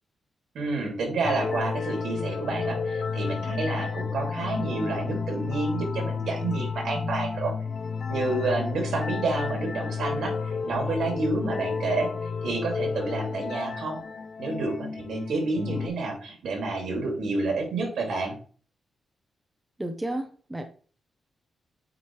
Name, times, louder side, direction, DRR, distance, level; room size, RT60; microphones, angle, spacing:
voice 1, 0.5-7.5 8.1-14.0 14.4-18.3, right 3 dB, 85° right, 1 dB, 2.8 m, -29 dB
sound 1, 1.2-15.9, left 5 dB, 40° left, 0.6 m, -31 dB
voice 2, 19.8-20.7, right 1 dB, 10° right, 6 dB, 0.6 m, -32 dB
8.6 x 3.0 x 4.7 m, 0.42 s
wide cardioid pair, 175°, 0 cm